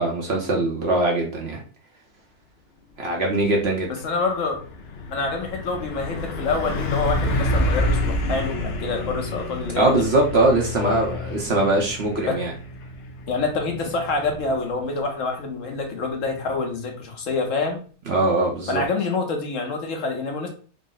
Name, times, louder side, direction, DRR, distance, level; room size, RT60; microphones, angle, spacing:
voice 1, 0.0-1.6 3.0-3.9 9.8-12.5 18.1-18.8, right 2 dB, 55° right, 0.8 m, -21 dB
Truck, 3.5-3.7 4.0-16.6, left 1 dB, 85° left, 0.5 m, -29 dB
voice 2, 3.9-4.6 5.1-10.0 10.8-11.0 12.3-12.4 13.3-17.8 18.7-20.5, left 3 dB, 60° left, 1.1 m, -26 dB
3.7 x 2.0 x 3.8 m
omnidirectional pair, 1.6 m